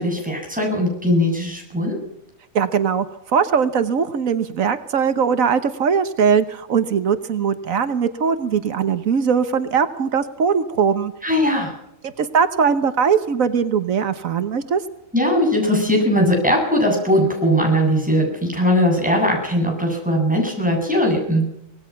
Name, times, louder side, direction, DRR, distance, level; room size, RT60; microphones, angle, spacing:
voice 1, 0.0-2.0 11.2-11.7 15.1-21.4, equal, 5° right, 0 dB, 7.9 m, -19 dB
voice 2, 2.5-3.1 3.3-11.1 12.0-14.8, right 6 dB, 85° right, 10 dB, 1.5 m, -20 dB
25.5 x 18.5 x 5.9 m, 0.79 s
omnidirectional pair, 1.4 m